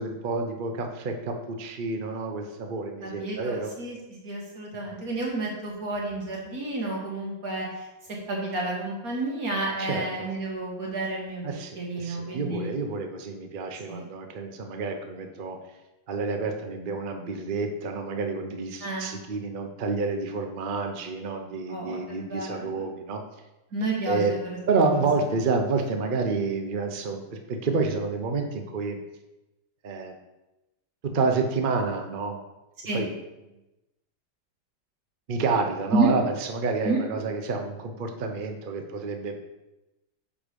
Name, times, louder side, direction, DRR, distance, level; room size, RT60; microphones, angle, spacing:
voice 1, 0.0-3.7 4.9-5.0 9.8-10.3 11.4-15.6 16.1-23.2 24.0-24.3 24.7-29.0 29.8-30.2 31.1-32.4 32.9-33.1 35.3-39.4, right 4 dB, 65° right, 4 dB, 0.5 m, -29 dB
voice 2, 3.0-4.0 4.2-7.7 8.3-11.5 11.8-12.7 13.9-14.0 18.8-19.1 21.7-22.7 23.7-24.6 24.9-25.0 32.9-33.0 35.9-36.1 36.8-37.0, right 2 dB, 50° right, -3 dB, 2.3 m, -30 dB
7.2 x 5.0 x 5.2 m, 1.0 s
omnidirectional pair, 2.1 m